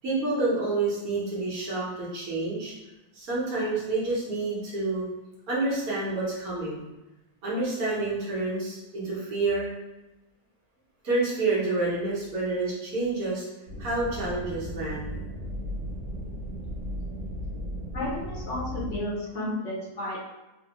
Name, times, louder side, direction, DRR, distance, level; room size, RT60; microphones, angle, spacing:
voice 1, 0.0-2.7 3.1-5.0 5.5-6.8 7.4-9.7 11.0-13.4 13.8-15.2, right 2 dB, 65° right, -6 dB, 1.4 m, -28 dB
sound 1, 13.7-19.0, equal, 45° right, 1.2 m, -36 dB
voice 2, 17.9-20.2, left 1 dB, 60° left, -5 dB, 0.9 m, -32 dB
3.8 x 2.1 x 2.9 m, 1.0 s
omnidirectional pair, 1.7 m